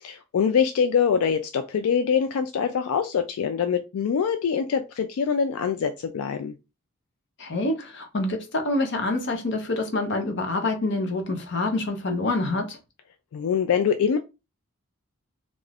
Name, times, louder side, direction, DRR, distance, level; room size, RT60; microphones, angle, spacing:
voice 1, 0.0-6.6 13.3-14.2, left 7 dB, 80° left, 0.3 m, -24 dB
voice 2, 7.4-12.8, left 2 dB, 55° left, 0.7 m, -26 dB
2.5 x 2.3 x 3.3 m
head